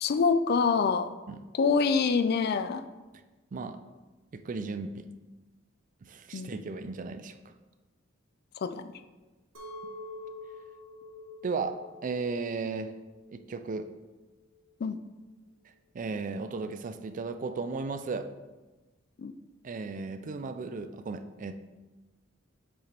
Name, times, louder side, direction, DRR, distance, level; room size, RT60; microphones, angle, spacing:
voice 1, 0.0-1.1 1.5-2.8 6.3-6.6 8.6-8.9 14.8-15.0 19.2-19.3, left 5 dB, 50° left, 11 dB, 0.4 m, -26 dB
voice 2, 4.3-5.1 6.0-7.4 11.4-11.8 12.0-12.9 13.3-13.9 15.9-18.3 19.6-21.6, right 4 dB, 40° right, 10 dB, 0.4 m, -35 dB
Chink clink, 9.5-14.7, left 2 dB, 85° right, 1.3 m, -47 dB
7.4 x 4.8 x 3.4 m, 1.2 s
head